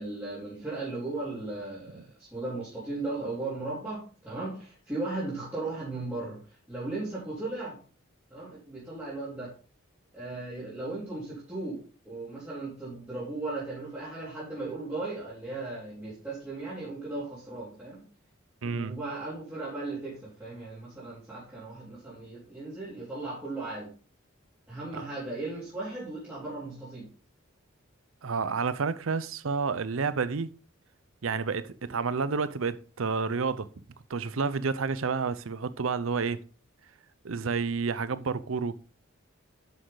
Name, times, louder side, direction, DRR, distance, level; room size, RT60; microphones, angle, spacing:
voice 1, 0.0-2.0 2.3-6.4 6.7-7.8 8.3-9.5 10.1-11.8 12.0-18.0 18.6-23.9 24.7-27.0, right 2 dB, 10° right, 3.8 m, -36 dB
voice 2, 18.6-19.0 24.9-25.1 28.2-30.5 31.2-33.7 34.1-36.4 37.2-38.8, right 5 dB, 75° right, 0.6 m, -30 dB
9.6 x 6.5 x 3.9 m
head